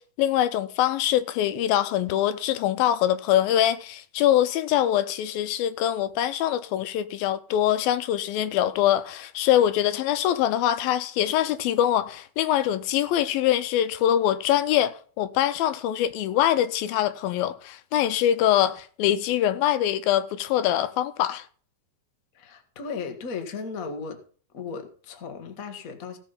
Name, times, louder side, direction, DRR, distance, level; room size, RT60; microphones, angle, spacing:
voice 1, 0.0-21.4, left 11 dB, 80° left, 2.6 m, -23 dB
voice 2, 22.3-24.2 24.5-26.2, left 5 dB, 60° left, 0.8 m, -36 dB
16.5 x 5.5 x 5.6 m
omnidirectional pair, 4.2 m